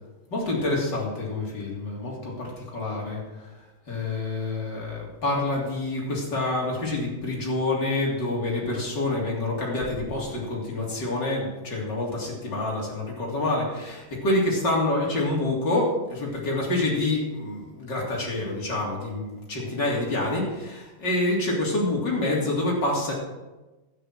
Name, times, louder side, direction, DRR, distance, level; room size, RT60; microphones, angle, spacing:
voice 1, 0.3-3.2 3.9-23.1, left 2 dB, 60° left, -3 dB, 3.9 m, -27 dB
12.5 x 9.7 x 6.1 m, 1.1 s
omnidirectional pair, 2.2 m